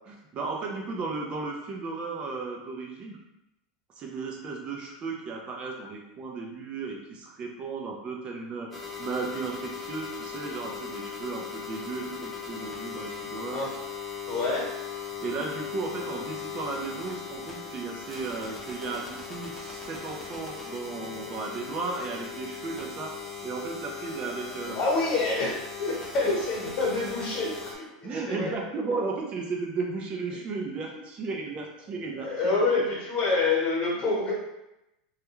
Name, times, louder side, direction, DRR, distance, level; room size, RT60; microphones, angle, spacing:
voice 1, 0.1-3.2 4.0-13.6 15.2-23.1 23.4-24.8 28.0-32.6, right 4 dB, 30° right, 0 dB, 0.4 m, -35 dB
sound 1, 8.7-27.8, left 6 dB, 5° left, 0.7 m, -39 dB
voice 2, 14.3-14.7 24.7-28.5 32.2-34.3, left 3 dB, 35° left, -4 dB, 1.0 m, -27 dB
2.3 x 2.2 x 2.9 m, 0.90 s
supercardioid pair, 130°, 3 cm